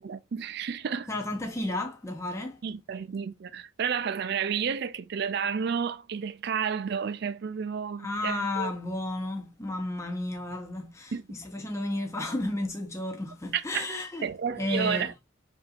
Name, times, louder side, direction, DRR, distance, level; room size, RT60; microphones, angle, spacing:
voice 1, 0.0-1.1 2.6-8.7 11.1-11.2 13.5-13.9 14.2-15.1, right 7 dB, 60° right, 0.4 m, -31 dB
voice 2, 1.1-2.6 8.0-14.3 14.6-15.1, left 1 dB, 15° left, 0.6 m, -32 dB
5.2 x 2.7 x 2.4 m
head